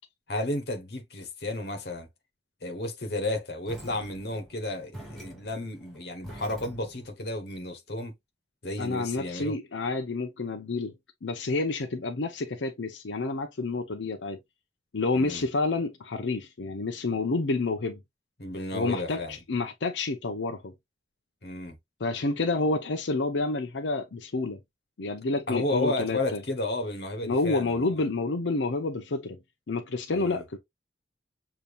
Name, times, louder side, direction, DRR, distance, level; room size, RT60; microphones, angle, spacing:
voice 1, 0.3-2.1 2.6-8.1 8.6-9.5 15.1-15.4 18.4-19.4 21.4-21.8 25.5-27.9 30.1-30.4, left 1 dB, 60° left, 1.2 m, -32 dB
sound 1, 3.7-7.2, right 1 dB, ahead, 2.2 m, -45 dB
voice 2, 8.8-10.9 11.2-14.4 14.9-18.0 18.7-20.7 22.0-24.6 25.0-26.4 27.2-29.4 29.7-30.6, left 3 dB, 90° left, 0.6 m, -29 dB
6.9 x 2.9 x 2.5 m
head